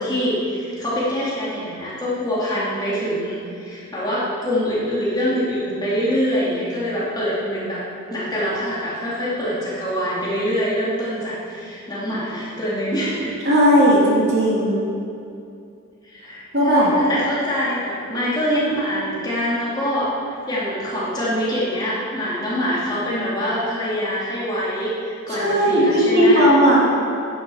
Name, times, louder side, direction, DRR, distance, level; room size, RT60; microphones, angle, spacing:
voice 1, 0.0-7.8 8.1-13.4 16.0-26.5, equal, 20° left, -8 dB, 3.0 m, -24 dB
voice 2, 13.4-14.9 16.5-16.9 25.3-26.8, equal, 45° right, -5 dB, 2.9 m, -16 dB
10.5 x 10.0 x 5.7 m, 2.5 s
head